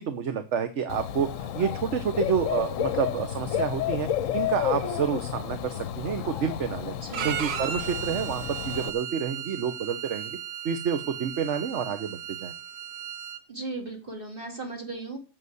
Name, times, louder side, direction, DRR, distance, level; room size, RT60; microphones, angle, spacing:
voice 1, 0.0-4.1 4.3-6.9 7.2-10.4 10.6-12.5, right 7 dB, 55° right, 9 dB, 1.1 m, -29 dB
Dog / Bird, 0.9-8.9, left 10 dB, 60° left, 1.0 m, -31 dB
Bowed string instrument, 7.1-13.4, right 9 dB, 90° right, 1.4 m, -35 dB
voice 2, 13.5-15.2, right 3 dB, 35° right, 1 dB, 3.3 m, -36 dB
8.0 x 7.8 x 8.1 m, 0.35 s
omnidirectional pair, 1.6 m